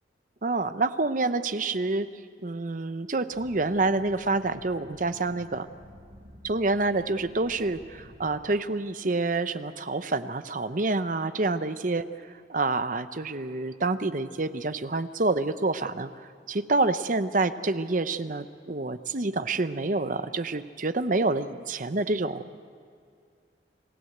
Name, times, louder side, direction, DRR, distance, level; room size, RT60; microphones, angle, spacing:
voice 1, 0.4-2.1 2.4-5.7 6.4-12.0 12.5-16.1 16.5-22.4, right 3 dB, 45° right, 11 dB, 0.8 m, -27 dB
sound 1, 3.3-8.4, equal, 75° right, 7.3 m, -51 dB
26.5 x 16.5 x 8.0 m, 2.2 s
head